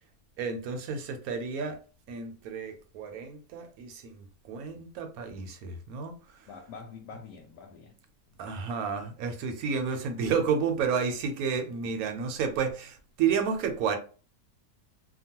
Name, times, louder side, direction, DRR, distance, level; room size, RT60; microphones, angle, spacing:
voice 1, 0.4-1.8 2.1-6.1 8.4-14.0, right 6 dB, 70° right, 1.0 m, -31 dB
voice 2, 6.5-8.0 8.3-8.8 11.8-11.9, left 5 dB, 70° left, 1.0 m, -47 dB
2.9 x 2.2 x 2.8 m
omnidirectional pair, 1.7 m